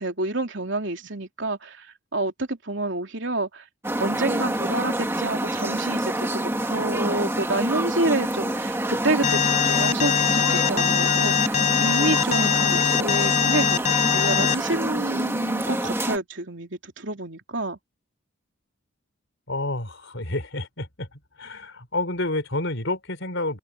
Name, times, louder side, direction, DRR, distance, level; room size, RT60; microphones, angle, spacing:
voice 1, 0.0-3.6 4.0-13.8 14.1-17.8, right 2 dB, 60° right, 3.5 m, -28 dB
sound 1, 3.8-16.2, right 1 dB, 10° right, 2.1 m, -27 dB
Alarm, 9.2-14.6, left 8 dB, 35° left, 0.4 m, -22 dB
voice 2, 19.5-21.1 21.4-23.6, left 2 dB, 65° left, 4.7 m, -29 dB
head